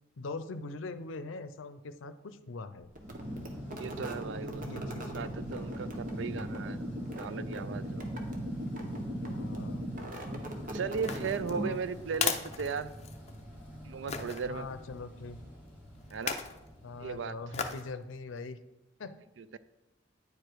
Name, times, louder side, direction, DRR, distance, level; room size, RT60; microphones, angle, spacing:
voice 1, 0.2-2.9 4.6-5.1 6.3-6.5 9.2-9.9 11.5-11.8 14.5-15.4 16.8-18.6 19.0-19.1, left 3 dB, 90° left, 12 dB, 0.6 m, -42 dB
sound 1, 2.9-11.9, right 1 dB, 45° right, 1.1 m, -38 dB
sound 2, 3.0-18.0, equal, 10° right, 2.0 m, -48 dB
voice 2, 3.8-6.9 7.2-8.0 10.7-12.9 13.8-14.7 16.1-16.3 17.0-17.4 19.4-19.6, right 5 dB, 70° right, 15 dB, 0.4 m, -37 dB
sound 3, 11.0-13.4 14.1-14.4 16.1-16.6 17.5-17.9 18.4-18.5, left 6 dB, 35° left, 0.6 m, -35 dB
9.5 x 4.9 x 4.6 m, 0.95 s
head